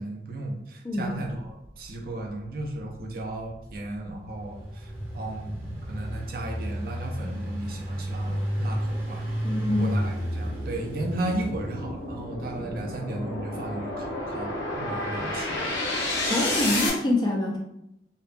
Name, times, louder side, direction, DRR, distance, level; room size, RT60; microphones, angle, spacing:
voice 1, 0.0-9.2 9.8-15.7, right 2 dB, 50° right, 1 dB, 0.5 m, -35 dB
sound 1, 3.6-16.9, left 2 dB, 80° left, 0.7 m, -33 dB
Engine, 4.2-12.2, equal, 10° right, 0.6 m, -32 dB
voice 2, 9.4-9.9 16.3-17.6, left 1 dB, 25° left, -1 dB, 0.3 m, -25 dB
2.6 x 2.2 x 2.5 m, 0.83 s
head